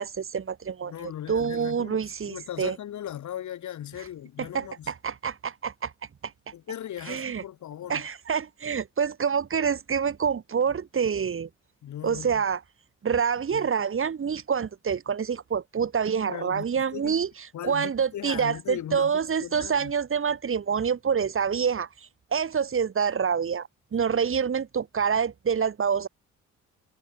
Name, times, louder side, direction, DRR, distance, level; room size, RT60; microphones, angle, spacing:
voice 1, 0.0-2.8 4.4-5.9 6.2-6.3 7.1-7.4 7.9-11.5 12.0-12.6 13.0-26.1, right 6 dB, 45° right, 3.8 m, -27 dB
voice 2, 0.8-2.0 2.3-4.9 6.5-8.0 11.8-12.4 13.5-13.7 16.3-17.2 17.5-19.9, left 11 dB, 70° left, 6.3 m, -38 dB
cardioid pair, 90°, 30 cm